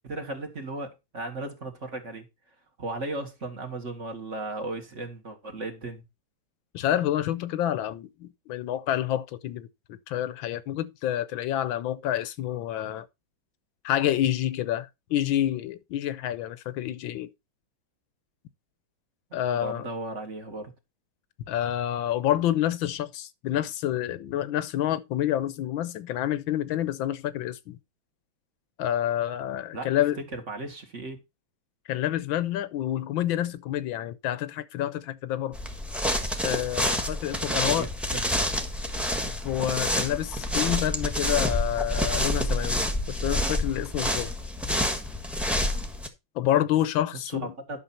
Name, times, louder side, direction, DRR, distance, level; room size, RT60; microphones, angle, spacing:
voice 1, 0.0-2.3 2.8-6.0 19.5-20.7 29.7-31.2 37.5-38.2 47.2-47.8, right 2 dB, 40° right, 2.2 m, -36 dB
voice 2, 6.7-9.7 10.1-13.1 13.8-17.3 19.3-19.9 21.5-27.8 28.8-30.2 31.9-35.6 36.4-37.9 39.4-44.3 46.3-47.5, left 12 dB, 85° left, 1.5 m, -28 dB
sound 1, 35.5-46.1, left 1 dB, ahead, 1.2 m, -28 dB
11.0 x 6.5 x 4.3 m
omnidirectional pair, 2.1 m